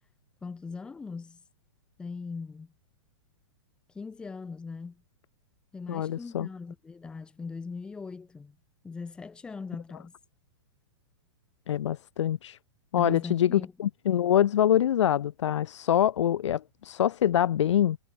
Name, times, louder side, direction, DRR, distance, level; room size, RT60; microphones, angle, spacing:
voice 1, 0.4-1.4 2.0-2.7 3.9-5.0 5.7-8.6 8.8-10.1 13.0-13.7, left 4 dB, 5° left, 3.9 m, -39 dB
voice 2, 5.9-6.5 11.7-12.6 12.9-18.0, left 10 dB, 90° left, 0.6 m, -25 dB
hypercardioid pair, 180°, 15 cm